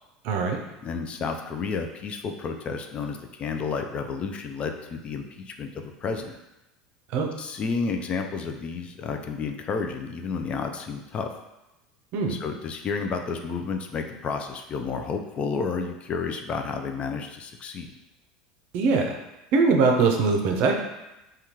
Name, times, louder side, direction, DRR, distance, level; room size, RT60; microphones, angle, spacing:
voice 1, 0.2-0.6 7.1-7.3 12.1-12.4 18.7-19.1 19.5-20.8, right 4 dB, 60° right, 3 dB, 0.5 m, -21 dB
voice 2, 0.8-6.4 7.4-11.3 12.3-17.9, left 5 dB, 35° left, 5 dB, 0.4 m, -31 dB
3.4 x 2.3 x 2.9 m, 0.96 s
hypercardioid pair, 90°, 3 cm